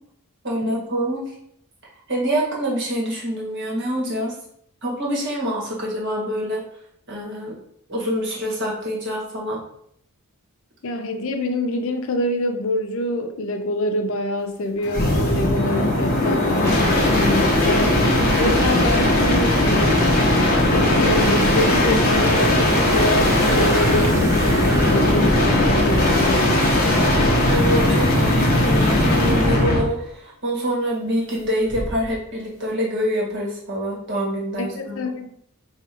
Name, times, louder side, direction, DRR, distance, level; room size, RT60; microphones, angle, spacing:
voice 1, 0.4-1.3 2.1-4.3 4.8-6.6 7.1-7.6 7.9-9.6 26.9-35.1, equal, 50° right, -4 dB, 1.6 m, -26 dB
voice 2, 10.8-18.0 18.4-20.1 20.7-26.6 34.6-35.3, left 1 dB, 60° left, 6 dB, 0.5 m, -25 dB
sound 1, 14.8-29.9 31.7-32.1, left 1 dB, 45° left, 1.0 m, -18 dB
sound 2, 21.4-26.2 27.3-27.4, right 1 dB, 15° right, 0.5 m, -33 dB
4.9 x 3.1 x 2.9 m, 0.70 s
head